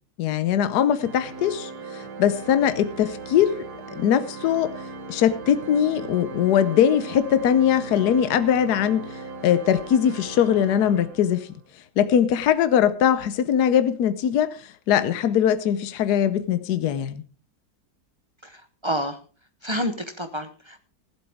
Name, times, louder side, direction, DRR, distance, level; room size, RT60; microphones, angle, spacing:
voice 1, 0.2-3.6 3.9-4.7 5.1-9.0 9.4-11.5 12.0-17.2, left 9 dB, 75° left, 1.3 m, -21 dB
Organ, 0.9-11.6, right 3 dB, 75° right, 1.8 m, -38 dB
voice 2, 18.4-19.2 19.6-20.9, equal, 35° right, 0.4 m, -29 dB
16.0 x 11.5 x 3.5 m
omnidirectional pair, 1.8 m